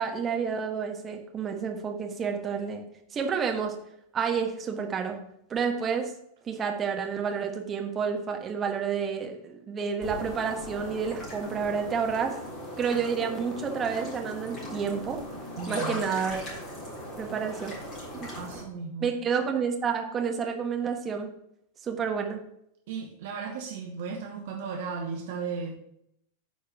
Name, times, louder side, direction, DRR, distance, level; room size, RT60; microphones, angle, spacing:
voice 1, 0.0-2.8 3.1-3.8 4.1-5.2 5.5-6.1 6.4-12.4 12.8-15.2 15.7-16.4 17.2-17.7 18.1-18.3 19.0-21.3 21.8-22.4, right 6 dB, 25° right, 3 dB, 1.4 m, -29 dB
sound 1, 10.0-18.6, equal, 25° left, 3.9 m, -38 dB
voice 2, 15.6-16.1 18.4-19.1 22.9-26.0, right 5 dB, 55° right, 2 dB, 1.0 m, -36 dB
9.5 x 4.6 x 5.9 m, 0.76 s
figure-of-eight pair, 90°, 0 cm